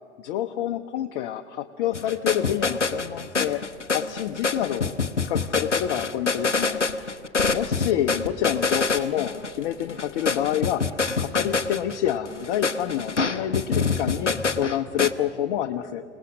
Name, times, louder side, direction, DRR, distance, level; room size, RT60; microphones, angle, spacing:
voice 1, 0.2-3.6 3.9-6.8 7.5-16.0, left 11 dB, 50° left, 5 dB, 0.8 m, -28 dB
sound 1, 1.9-15.1, left 4 dB, 90° left, 0.7 m, -26 dB
26.5 x 18.5 x 6.3 m, 2.5 s
figure-of-eight pair, 80°, 35 cm